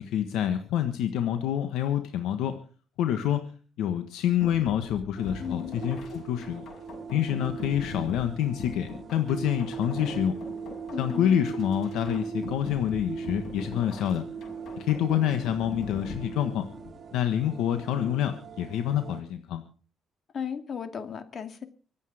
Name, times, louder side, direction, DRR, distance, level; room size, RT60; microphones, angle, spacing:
voice 1, 0.0-2.6 3.0-3.5 3.8-6.6 7.1-10.4 11.0-14.2 14.8-16.7 17.1-19.6, left 10 dB, 90° left, 8 dB, 1.4 m, -27 dB
sound 1, 4.4-17.0, left 4 dB, 70° left, 6.3 m, -42 dB
sound 2, 5.2-19.2, right 5 dB, 45° right, 3.2 m, -39 dB
voice 2, 5.4-5.7 10.9-11.4 20.3-21.7, left 7 dB, 50° left, 9 dB, 2.3 m, -35 dB
25.0 x 8.5 x 5.0 m, 0.39 s
cardioid pair, 90°, 0 cm